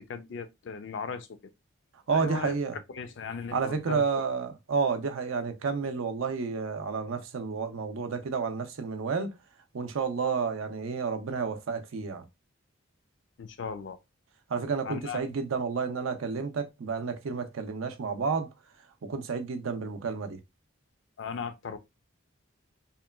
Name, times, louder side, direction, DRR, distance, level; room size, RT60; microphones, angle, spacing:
voice 1, 0.0-1.5 2.1-2.5 2.9-4.0 13.4-14.0 14.8-15.2 21.2-21.8, left 5 dB, 60° left, 0.4 m, -37 dB
voice 2, 2.1-2.8 3.5-9.3 9.7-12.2 14.5-18.5 19.0-20.4, right 5 dB, 75° right, 0.5 m, -30 dB
2.9 x 2.2 x 2.2 m
head